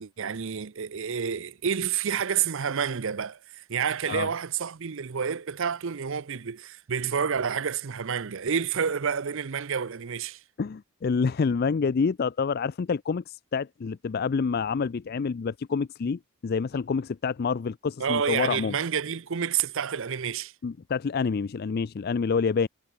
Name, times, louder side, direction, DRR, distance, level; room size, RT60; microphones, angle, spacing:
voice 1, 0.0-10.4 18.0-20.5, right 7 dB, 60° right, 0.6 m, -29 dB
voice 2, 10.6-18.8 20.6-22.7, left 5 dB, 45° left, 0.4 m, -27 dB
head